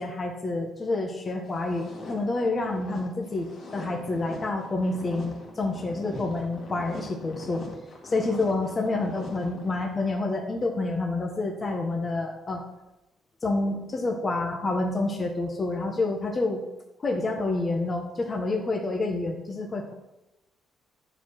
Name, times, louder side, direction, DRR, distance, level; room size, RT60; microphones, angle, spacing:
voice 1, 0.0-7.6 8.0-12.6 13.4-16.6 17.0-19.9, left 2 dB, 25° left, 1 dB, 1.2 m, -28 dB
sound 1, 1.5-10.1, left 2 dB, 45° left, 2.4 m, -42 dB
12.5 x 4.8 x 5.9 m, 0.96 s
cardioid pair, 165°, 0 cm